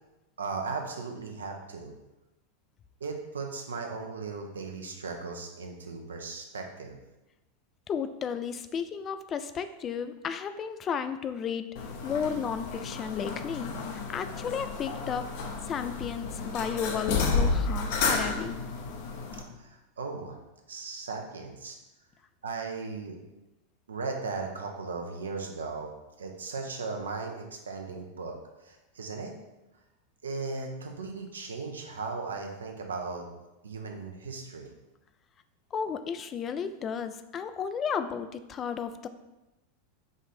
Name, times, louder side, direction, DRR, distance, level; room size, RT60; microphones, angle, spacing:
voice 1, 0.4-1.9 3.0-7.0 19.6-20.4 20.7-21.8 22.4-23.2 23.9-25.9 26.2-28.4 28.6-29.3 30.2-33.2 33.6-34.7, right 4 dB, 80° right, 3 dB, 0.7 m, -37 dB
voice 2, 7.9-15.3 15.7-18.6 35.7-39.1, left 7 dB, 30° left, 10 dB, 0.3 m, -33 dB
sound 1, 11.8-19.4, left 4 dB, 60° left, 0.7 m, -31 dB
4.9 x 2.5 x 4.1 m, 1.0 s
figure-of-eight pair, 90°, 0 cm